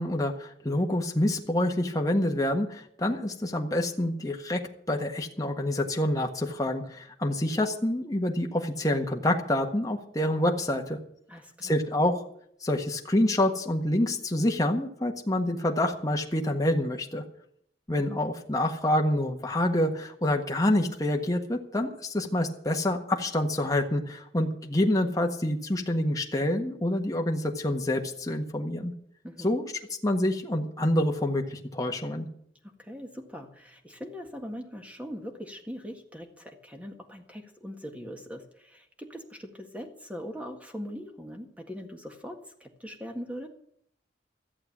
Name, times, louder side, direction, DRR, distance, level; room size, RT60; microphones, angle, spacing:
voice 1, 0.0-11.0 11.6-12.1 12.6-17.2 17.9-28.9 29.4-29.7 30.0-32.3, left 1 dB, 20° left, 2 dB, 1.5 m, -27 dB
voice 2, 11.3-11.7 29.2-29.5 32.6-43.5, equal, 10° right, 4 dB, 1.7 m, -41 dB
14.5 x 7.8 x 8.8 m, 0.69 s
head